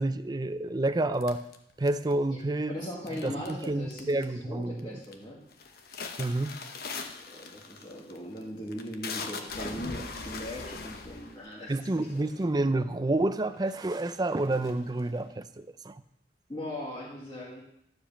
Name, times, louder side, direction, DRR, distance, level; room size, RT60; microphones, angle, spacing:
voice 1, 0.0-1.4 1.8-2.8 3.2-5.0 6.2-6.5 11.7-16.0, right 2 dB, 25° right, 12 dB, 0.4 m, -29 dB
sound 1, 1.2-2.3 3.1-3.6 3.9-4.4 4.8-5.2 5.5-12.6 13.2-13.3 13.6-15.2, left 4 dB, 60° left, 1.0 m, -41 dB
voice 2, 2.7-5.4 7.3-12.2 16.5-17.6, equal, 25° left, -6 dB, 1.8 m, -39 dB
12.0 x 5.0 x 7.1 m, 0.78 s
head